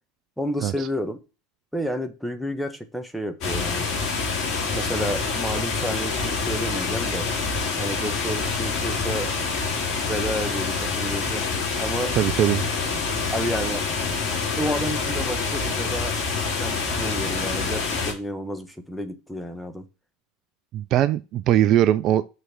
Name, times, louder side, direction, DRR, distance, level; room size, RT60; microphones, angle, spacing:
voice 1, 0.4-1.2 1.7-3.9 4.7-7.3 7.8-9.3 10.1-11.5 11.8-12.1 13.3-13.9 14.6-16.2 16.5-19.9, equal, ahead, 1.4 m, -30 dB
sound 1, 3.4-18.1, left 4 dB, 45° left, 4.4 m, -26 dB
voice 2, 12.2-12.6 20.7-22.3, right 12 dB, 45° right, 0.4 m, -20 dB
6.3 x 6.1 x 6.0 m
figure-of-eight pair, 75°, 0 cm